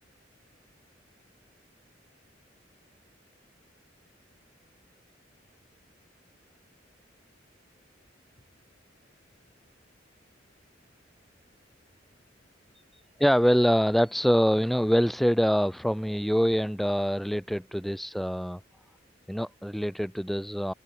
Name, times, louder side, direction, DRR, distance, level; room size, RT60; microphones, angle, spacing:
voice 1, 8.3-8.8 9.3-10.5 11.2-11.9, left 1 dB, 90° left, 3.2 m, -72 dB
voice 2, 13.2-18.6 19.3-20.7, equal, ahead, 0.4 m, -25 dB
head